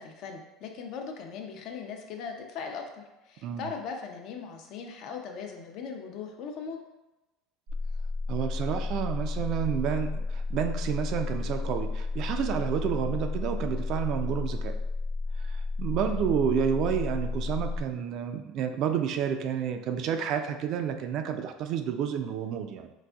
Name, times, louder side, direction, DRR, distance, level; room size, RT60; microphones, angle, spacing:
voice 1, 0.0-6.8 16.0-16.2, left 5 dB, 60° left, 3 dB, 0.5 m, -39 dB
sound 1, 7.7-17.8, left 3 dB, 85° right, 1.0 m, -32 dB
voice 2, 8.3-14.7 15.4-22.9, right 8 dB, 55° right, 7 dB, 0.3 m, -30 dB
3.9 x 2.5 x 2.3 m, 1.0 s
supercardioid pair, 115°, 0 cm